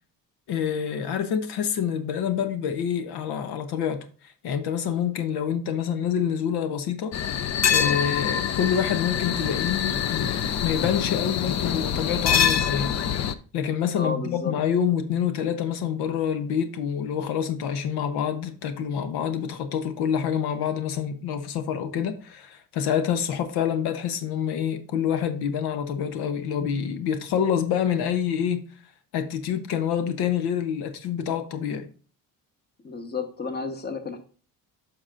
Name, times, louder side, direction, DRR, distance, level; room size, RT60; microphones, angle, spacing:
voice 1, 0.5-4.0 4.4-7.1 7.7-12.9 13.5-28.7 29.1-31.9, left 8 dB, 80° left, 1.0 m, -27 dB
sound 1, 7.1-13.3, left 8 dB, 45° left, 0.6 m, -25 dB
voice 2, 13.9-14.5 32.8-34.2, left 4 dB, 25° left, 1.2 m, -31 dB
9.4 x 6.0 x 2.5 m
cardioid pair, 120°, 38 cm